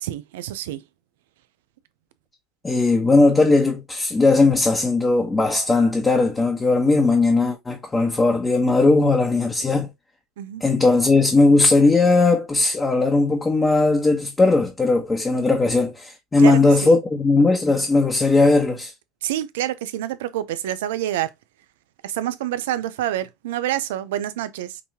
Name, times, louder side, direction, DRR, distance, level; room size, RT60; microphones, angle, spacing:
voice 1, 0.0-0.8 10.4-10.6 16.4-17.0 19.2-21.3 22.0-24.8, right 12 dB, 85° right, 0.5 m, -27 dB
voice 2, 2.6-9.9 10.6-18.9, left 3 dB, 20° left, 1.1 m, -18 dB
5.2 x 2.8 x 2.7 m
supercardioid pair, 90°, 0 cm